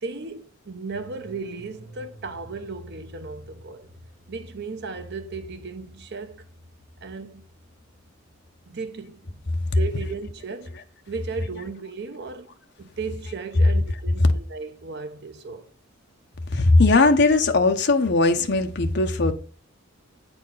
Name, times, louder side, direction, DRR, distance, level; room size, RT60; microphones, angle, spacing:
voice 1, 0.0-3.9 4.3-6.4 7.0-7.5 8.7-9.4 9.7-10.8 11.1-12.5 12.8-15.7, right 4 dB, 50° right, 0.7 m, -35 dB
sound 1, 0.9-10.7 11.0-11.1, equal, 35° right, 2.8 m, -49 dB
voice 2, 16.5-19.3, left 3 dB, 50° left, 0.9 m, -19 dB
8.6 x 4.4 x 5.6 m
head